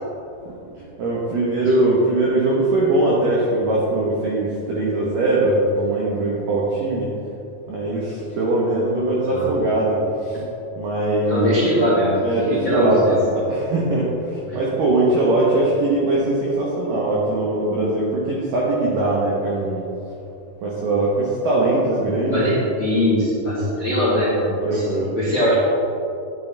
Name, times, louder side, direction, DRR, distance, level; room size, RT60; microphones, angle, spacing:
voice 1, 1.0-7.1 7.7-10.4 10.8-11.6 12.2-19.9 20.6-22.6 24.6-25.1, right 2 dB, 80° right, -5 dB, 1.9 m, -21 dB
voice 2, 11.3-12.1 12.5-13.2 14.5-14.6 22.3-25.5, equal, 90° left, -9 dB, 1.0 m, -21 dB
11.5 x 9.8 x 3.4 m, 2.7 s
omnidirectional pair, 5.7 m